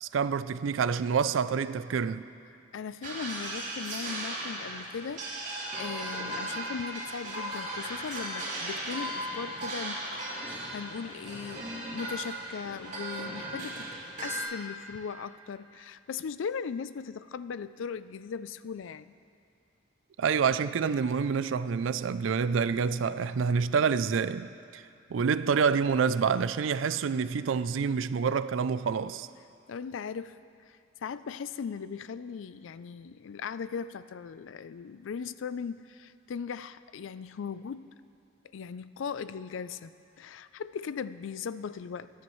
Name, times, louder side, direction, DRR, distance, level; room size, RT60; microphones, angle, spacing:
voice 1, 0.0-2.3 20.2-24.8 25.1-29.3, right 6 dB, 85° right, 0.4 m, -27 dB
voice 2, 2.7-13.9 14.2-19.1 29.7-37.9 38.5-39.9 40.2-42.1, left 6 dB, 85° left, 0.4 m, -38 dB
sound 1, 3.0-14.4, right 1 dB, 40° right, 3.2 m, -37 dB
23.0 x 10.5 x 3.1 m
head